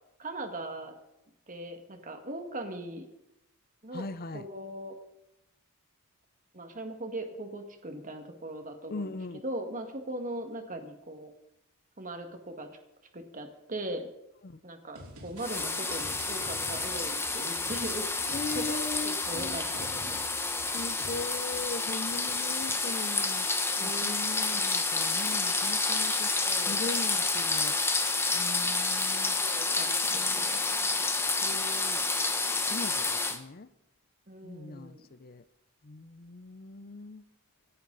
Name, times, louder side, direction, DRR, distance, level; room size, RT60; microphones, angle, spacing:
voice 1, 0.2-1.0 1.5-3.1 3.8-4.1 4.3-4.9 6.5-9.1 9.4-11.3 12.0-12.7 13.1-14.0 14.6-18.8 19.0-20.2 23.8-24.1 26.4-26.8 29.4-30.6 30.9-31.2 34.3-35.0, right 1 dB, 35° right, 1.9 m, -39 dB
voice 2, 3.9-4.5 8.9-9.4 14.4-14.6 18.3-20.3 20.6-27.8 28.3-29.4 30.1-31.1 31.4-32.0 32.7-33.7 34.4-35.4 35.8-37.2, left 3 dB, 45° left, 0.6 m, -40 dB
sound 1, 15.0-21.6, right 1 dB, 80° right, 4.2 m, -48 dB
sound 2, 15.4-33.4, left 3 dB, 10° left, 1.0 m, -29 dB
26.0 x 11.0 x 4.0 m
head